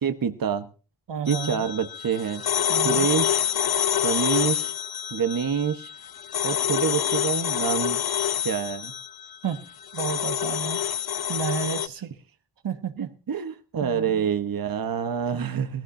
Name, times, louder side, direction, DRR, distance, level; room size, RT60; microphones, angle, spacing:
voice 1, 0.0-0.7 1.3-2.4 2.8-3.4 4.0-4.7 5.1-5.9 6.4-8.0 8.4-8.9 13.0-15.8, right 7 dB, 55° right, 9 dB, 1.1 m, -27 dB
voice 2, 1.1-1.7 2.7-3.1 9.4-9.6 9.9-10.8 11.3-12.1 12.6-13.1 13.8-14.3, right 6 dB, 85° right, 9 dB, 1.6 m, -31 dB
sound 1, 1.3-11.9, left 10 dB, 60° left, 0.7 m, -27 dB
21.0 x 15.0 x 2.6 m, 0.36 s
wide cardioid pair, 140°, 42 cm